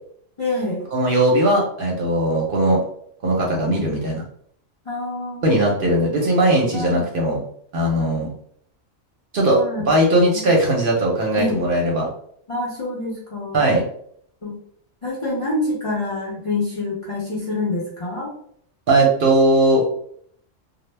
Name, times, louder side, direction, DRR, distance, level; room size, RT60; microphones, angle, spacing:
voice 1, 0.4-0.8 4.9-5.4 6.7-7.0 8.0-8.1 9.5-10.0 10.3-10.5 11.4-11.6 12.5-13.6 14.4-14.5 15.0-18.3, left 2 dB, 45° left, -5 dB, 0.4 m, -26 dB
voice 2, 0.9-2.8 3.2-4.2 5.4-7.4 7.7-8.3 9.3-12.1 13.5-13.8 18.9-19.8, right 1 dB, 55° right, -2 dB, 0.7 m, -19 dB
2.1 x 2.0 x 3.1 m, 0.64 s
omnidirectional pair, 1.3 m